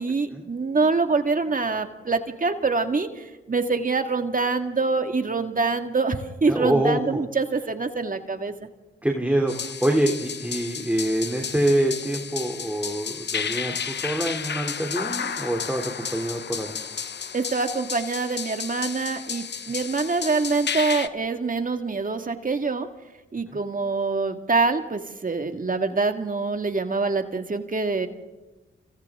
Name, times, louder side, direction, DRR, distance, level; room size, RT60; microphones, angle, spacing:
voice 1, 0.0-8.7 17.3-22.9 23.3-28.1, right 4 dB, 40° right, 7 dB, 1.9 m, -25 dB
voice 2, 6.5-7.0 9.0-16.8, right 1 dB, 5° right, 1 dB, 2.8 m, -25 dB
strange music (percussion only), 9.5-21.1, left 7 dB, 55° left, 1.0 m, -32 dB
29.0 x 27.0 x 3.7 m, 1.1 s
cardioid pair, 55°, 21 cm